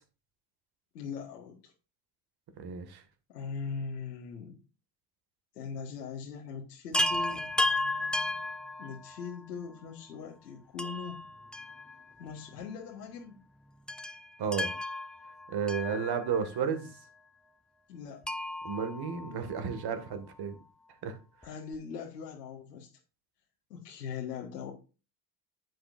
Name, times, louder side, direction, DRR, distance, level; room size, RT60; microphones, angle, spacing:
voice 1, 0.9-1.7 3.3-4.6 5.5-7.5 8.8-11.2 12.2-13.4 17.9-18.2 21.4-22.9 23.7-24.7, left 6 dB, 90° left, 1.6 m, -40 dB
voice 2, 2.6-3.0 14.4-14.7 15.5-16.9 18.6-20.6 21.0-21.2, right 6 dB, 50° right, 2.0 m, -32 dB
Chime, 6.9-9.4 10.8-12.3 12.6-12.7 13.9-16.6 18.2-19.9 21.4-21.5 21.7-21.8, left 1 dB, ahead, 0.6 m, -34 dB
9.7 x 7.9 x 2.5 m
hypercardioid pair, 65°, 47 cm